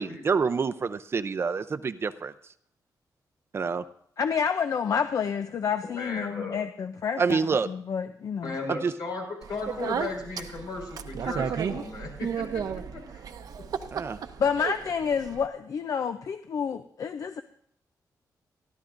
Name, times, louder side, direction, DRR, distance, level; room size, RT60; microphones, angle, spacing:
voice 1, 0.0-2.3 3.5-3.8 7.2-7.7 8.7-8.9 13.9-14.2, right 5 dB, 40° right, 11 dB, 0.5 m, -27 dB
voice 2, 4.2-7.4 7.7-8.6 14.4-17.4, left 6 dB, 55° left, 9 dB, 0.5 m, -29 dB
voice 3, 5.9-6.6 8.4-13.2, left 3 dB, 80° left, 0 dB, 5.6 m, -36 dB
Speech, 9.4-15.5, right 7 dB, 70° right, 0.8 m, -34 dB
30.0 x 12.0 x 2.6 m, 0.65 s
wide cardioid pair, 165°, 7 cm